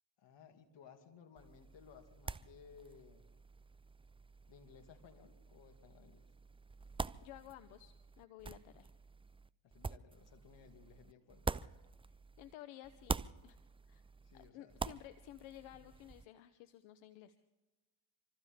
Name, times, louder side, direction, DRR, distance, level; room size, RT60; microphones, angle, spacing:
voice 1, 0.2-3.3 4.5-6.3 9.6-11.5 14.2-14.8 15.7-15.9, left 6 dB, 65° left, 4 dB, 2.7 m, -60 dB
sound 1, 1.4-12.5 12.8-16.3, right 4 dB, 10° right, 0.4 m, -46 dB
voice 2, 7.2-8.9 12.4-13.6 13.9-14.0 14.3-17.4, left 13 dB, 85° left, 12 dB, 0.9 m, -54 dB
26.0 x 15.0 x 3.6 m, 1.1 s
supercardioid pair, 60°, 46 cm